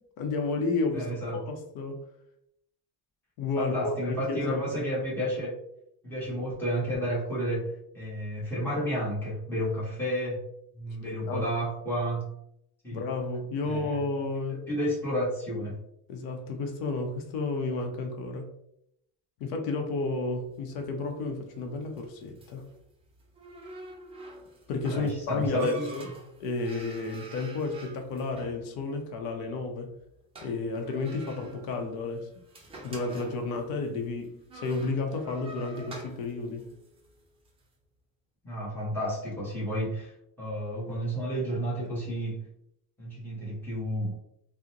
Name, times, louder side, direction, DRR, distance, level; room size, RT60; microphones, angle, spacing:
voice 1, 0.2-1.1 1.3-2.0 3.4-4.6 11.1-11.4 12.9-14.6 16.1-18.5 19.4-22.7 24.7-26.1 26.4-29.9 30.4-32.3 32.8-36.7, left 3 dB, 85° left, 4 dB, 0.7 m, -32 dB
voice 2, 0.9-1.4 3.6-5.6 6.0-10.4 10.7-12.3 12.8-13.0 13.6-14.0 14.5-15.8 24.9-26.1 38.4-40.1 40.4-42.5 43.0-44.2, equal, 5° left, -8 dB, 1.1 m, -31 dB
sound 1, 20.4-37.6, right 2 dB, 15° right, 0.5 m, -49 dB
3.7 x 2.1 x 2.8 m, 0.76 s
cardioid pair, 165°, 36 cm